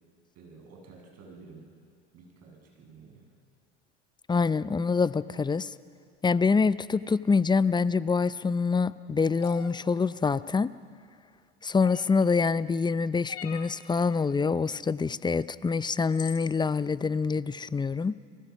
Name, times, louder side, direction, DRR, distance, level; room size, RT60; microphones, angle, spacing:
voice 1, 0.4-1.7 2.1-3.3, right 4 dB, 50° right, 1 dB, 7.3 m, -51 dB
voice 2, 4.3-5.7 6.2-10.7 11.6-18.2, left 4 dB, 15° left, 17 dB, 0.6 m, -26 dB
sound 1, 9.4-9.7 11.8-12.2 13.3-13.7 15.4-15.5 16.1-16.5, left 9 dB, 50° left, 2.3 m, -43 dB
29.5 x 20.0 x 6.1 m, 2.2 s
hypercardioid pair, 80°, 33 cm